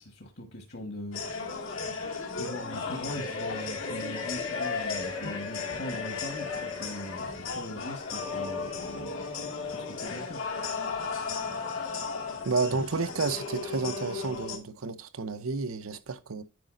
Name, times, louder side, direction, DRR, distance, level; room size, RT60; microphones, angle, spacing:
voice 1, 0.0-2.0 2.3-10.5, left 1 dB, 55° left, 1.4 m, -41 dB
sound 1, 1.1-14.6, left 4 dB, 85° left, 2.0 m, -35 dB
voice 2, 12.4-16.4, right 4 dB, 90° right, 0.7 m, -31 dB
9.4 x 4.9 x 2.5 m
head